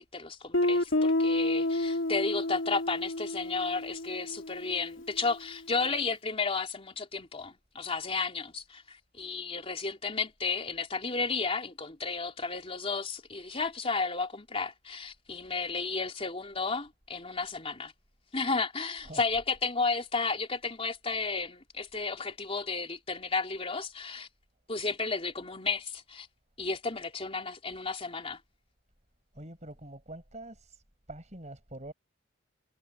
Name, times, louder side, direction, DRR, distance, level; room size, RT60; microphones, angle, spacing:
voice 1, 0.0-17.9 18.3-24.3 24.7-26.3 26.6-28.4, left 4 dB, 30° left, 3.4 m, -33 dB
Guitar, 0.5-5.2, left 1 dB, 85° left, 2.2 m, -30 dB
voice 2, 29.3-30.8 31.1-31.9, right 1 dB, 35° right, 6.5 m, -45 dB
head